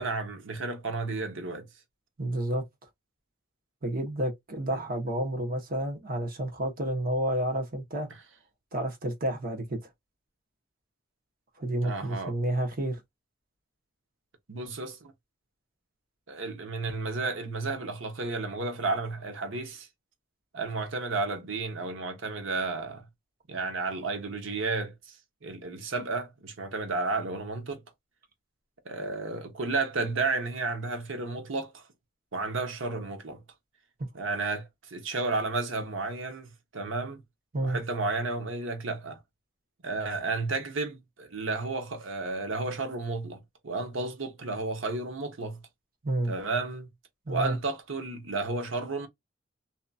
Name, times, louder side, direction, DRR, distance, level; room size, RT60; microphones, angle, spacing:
voice 1, 0.0-1.7 4.7-4.8 11.8-12.4 14.5-15.1 16.3-19.9 20.5-23.0 23.5-25.2 25.4-27.8 28.8-31.8 32.3-33.4 34.1-37.2 37.6-39.2 39.8-45.6 46.3-46.9 47.3-49.1, right 3 dB, 80° right, 0.9 m, -32 dB
voice 2, 2.2-2.6 3.8-8.1 8.7-9.8 11.6-13.0 37.5-37.8 46.0-46.3 47.3-47.6, right 1 dB, 50° right, 1.0 m, -30 dB
2.9 x 2.6 x 2.3 m
head